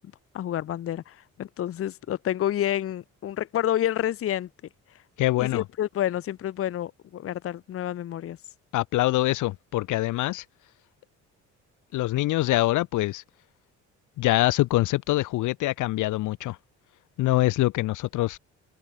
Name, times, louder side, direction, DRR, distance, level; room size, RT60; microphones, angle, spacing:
voice 1, 0.3-4.5 5.4-8.4, left 11 dB, 50° left, 0.6 m, -29 dB
voice 2, 5.2-5.6 8.7-10.4 11.9-13.2 14.2-16.6 17.2-18.4, left 17 dB, 85° left, 0.7 m, -24 dB
cardioid pair, 90°, 30 cm